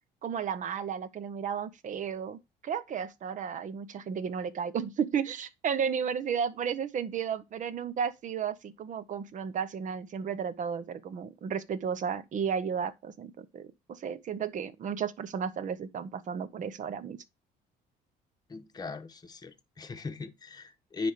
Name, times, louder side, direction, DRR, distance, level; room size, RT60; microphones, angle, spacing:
voice 1, 0.2-17.2, right 7 dB, 50° right, 0.9 m, -33 dB
voice 2, 18.5-21.1, left 3 dB, 25° left, 1.0 m, -38 dB
10.0 x 3.5 x 5.0 m
cardioid pair, 110°, 17 cm